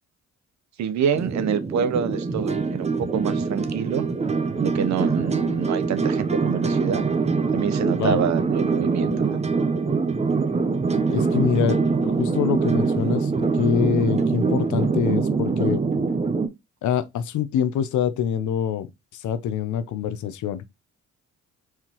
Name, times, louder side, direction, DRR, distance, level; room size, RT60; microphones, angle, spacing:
voice 1, 0.8-4.0 4.6-7.1 7.5-9.4, right 8 dB, 65° right, 0.8 m, -26 dB
sound 1, 1.1-16.5, right 4 dB, 20° right, 0.7 m, -24 dB
voice 2, 11.1-15.8 16.8-18.9 19.1-20.7, left 8 dB, 75° left, 0.7 m, -25 dB
4.6 x 3.6 x 2.9 m
cardioid pair, 90°, 30 cm